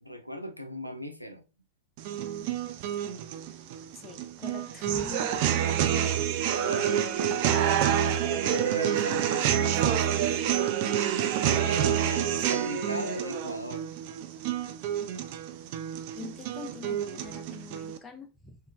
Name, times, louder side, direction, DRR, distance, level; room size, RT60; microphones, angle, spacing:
voice 1, 0.0-1.4 6.6-7.9 8.4-10.5 11.4-13.9, equal, 90° left, 0.3 m, -38 dB
sound 1, 2.0-18.0, right 9 dB, 45° right, 0.3 m, -28 dB
voice 2, 3.9-5.4 16.1-18.6, left 5 dB, 15° left, 0.6 m, -44 dB
3.1 x 2.2 x 2.3 m
figure-of-eight pair, 90°, 0 cm